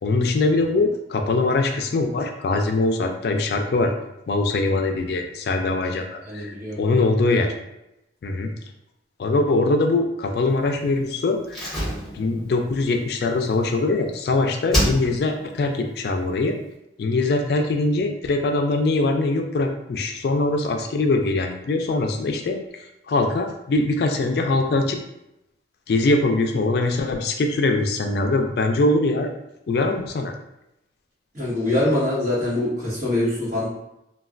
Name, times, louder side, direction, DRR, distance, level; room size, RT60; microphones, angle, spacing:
voice 1, 0.0-3.9 4.3-7.5 8.2-8.5 9.2-11.7 12.1-16.6 17.0-22.6 23.1-25.0 25.9-29.3 29.7-30.3, left 2 dB, 60° left, 4 dB, 0.3 m, -22 dB
voice 2, 6.2-7.0 31.3-33.7, left 1 dB, 45° right, -8 dB, 1.3 m, -24 dB
Slam, 11.5-14.2 14.7-15.5 15.7-15.8, equal, ahead, 1.1 m, -27 dB
3.2 x 2.2 x 2.4 m, 0.87 s
head